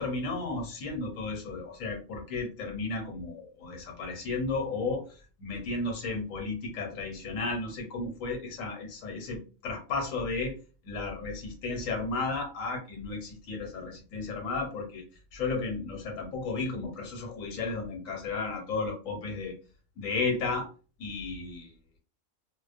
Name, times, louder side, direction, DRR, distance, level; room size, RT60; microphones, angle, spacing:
voice 1, 0.0-10.5 10.8-15.0 15.3-19.5 20.0-20.7 21.0-21.7, left 3 dB, 70° left, 2 dB, 1.1 m, -33 dB
2.4 x 2.1 x 2.4 m, 0.36 s
omnidirectional pair, 1.5 m